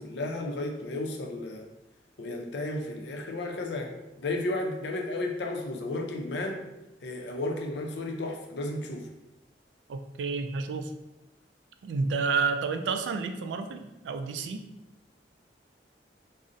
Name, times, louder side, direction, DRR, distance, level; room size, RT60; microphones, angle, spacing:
voice 1, 0.0-1.7 2.2-6.7 7.0-9.1, left 2 dB, 75° left, 2 dB, 0.5 m, -33 dB
voice 2, 9.9-10.9 11.8-14.7, right 4 dB, 85° right, 7 dB, 0.3 m, -30 dB
2.6 x 2.1 x 3.7 m, 0.92 s
head